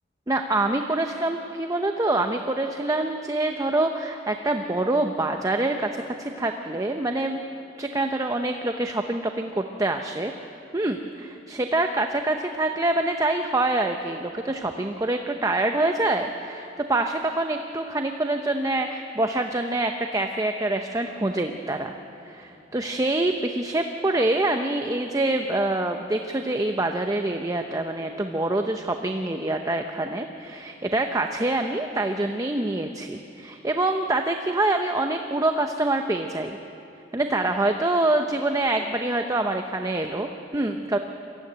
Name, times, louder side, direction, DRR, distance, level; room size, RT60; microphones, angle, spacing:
voice 1, 0.3-7.4 7.8-10.3 10.7-21.9 22.2-36.6 37.1-41.0, right 2 dB, 20° right, 5 dB, 0.7 m, -25 dB
23.5 x 15.0 x 9.2 m, 2.9 s
head